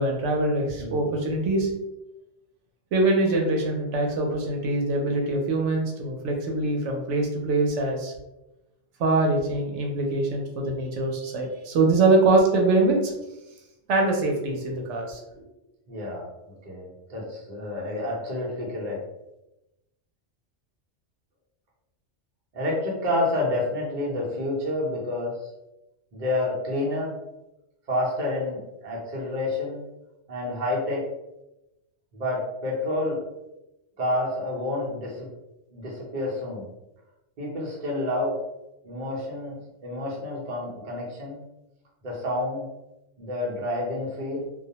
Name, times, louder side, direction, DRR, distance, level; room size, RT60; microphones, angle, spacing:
voice 1, 0.0-1.7 2.9-8.1 9.0-13.1 13.9-15.2, right 2 dB, 85° right, 1 dB, 0.9 m, -23 dB
voice 2, 15.9-16.3 16.6-19.0 22.5-25.3 26.1-27.1 27.9-29.8 30.3-31.0 32.1-33.2 34.0-35.3 35.7-36.7 37.4-38.3 38.8-39.5 39.8-41.4 42.0-42.7 43.2-44.5, left 1 dB, 50° right, -3 dB, 0.8 m, -29 dB
2.3 x 2.1 x 2.8 m, 0.93 s
omnidirectional pair, 1.2 m